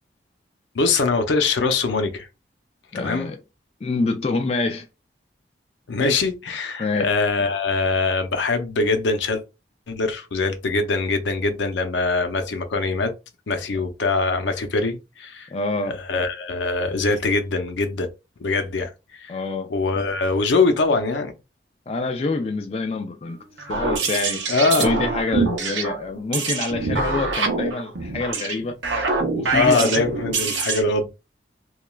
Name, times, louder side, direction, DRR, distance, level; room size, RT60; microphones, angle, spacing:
voice 1, 0.7-2.3 2.9-3.3 5.9-9.4 9.9-13.1 13.5-15.5 15.9-18.1 18.4-19.3 19.7-21.3 24.5-25.0 29.5-31.1, left 3 dB, 90° left, 0.6 m, -23 dB
voice 2, 2.9-3.4 3.8-4.8 6.8-7.1 15.5-16.0 19.3-19.7 21.9-23.4 23.7-24.4 24.8-28.8 29.3-30.0, left 3 dB, 35° left, 0.3 m, -26 dB
sound 1, 23.6-30.8, right 4 dB, 85° right, 0.7 m, -25 dB
3.0 x 2.3 x 2.2 m
head